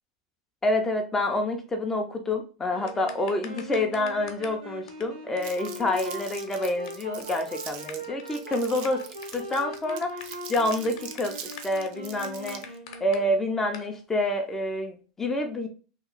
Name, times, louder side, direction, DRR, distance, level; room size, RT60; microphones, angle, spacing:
voice 1, 0.6-9.0 9.3-12.6 13.0-15.7, left 1 dB, 10° left, 4 dB, 0.3 m, -28 dB
Wind instrument woodwind instrument, 2.7-13.8, equal, 85° right, 1.3 m, -41 dB
sound 1, 2.9-4.6 4.9-5.0 5.4-5.5 5.7-5.8 6.0-6.1 6.3-6.9 7.2-7.4 7.7-13.2 13.7-13.9, left 8 dB, 65° left, 0.7 m, -43 dB
Crumpling crinkling, 5.4-12.8, right 8 dB, 45° right, 0.5 m, -43 dB
2.8 x 2.2 x 3.8 m, 0.37 s
supercardioid pair, 145°, 3 cm